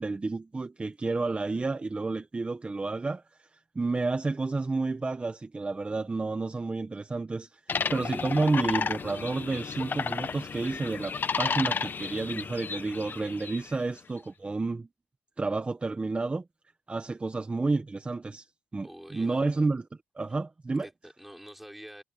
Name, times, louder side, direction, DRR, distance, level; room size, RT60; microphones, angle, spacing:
voice 1, 0.0-7.6 7.9-14.9 15.4-16.4 16.9-18.5 18.7-19.8 20.1-20.9, right 3 dB, 30° right, 1.4 m, -30 dB
sound 1, 7.7-13.8, left 5 dB, 50° left, 1.3 m, -32 dB
voice 2, 18.8-19.4 20.8-22.0, equal, 5° right, 6.4 m, -46 dB
supercardioid pair, 60°, 4 cm